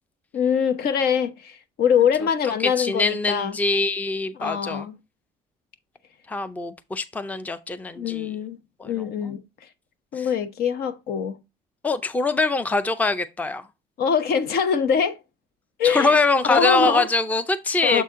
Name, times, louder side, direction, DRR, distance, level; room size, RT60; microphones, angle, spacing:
voice 1, 0.3-3.5 4.4-4.9 8.0-8.6 8.8-9.4 10.1-11.4 14.0-15.2 15.8-16.2 16.4-17.1 17.8-18.0, left 7 dB, 65° left, 0.9 m, -23 dB
voice 2, 2.4-4.9 6.3-8.3 8.8-9.3 10.1-10.3 11.8-13.7 15.8-18.0, left 3 dB, 10° left, 0.5 m, -24 dB
7.0 x 4.1 x 3.6 m
cardioid pair, 110°, 17 cm